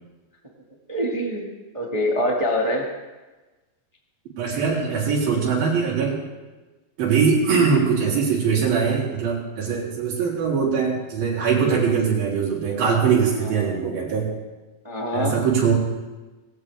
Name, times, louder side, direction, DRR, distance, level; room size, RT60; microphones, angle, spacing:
voice 1, 0.9-1.5 1.7-2.8 14.8-15.4, left 1 dB, 35° right, -1 dB, 0.4 m, -24 dB
voice 2, 4.4-6.2 7.0-14.3 15.1-15.7, right 6 dB, 70° right, -3 dB, 5.2 m, -21 dB
19.5 x 17.5 x 3.5 m, 1.2 s
omnidirectional pair, 4.3 m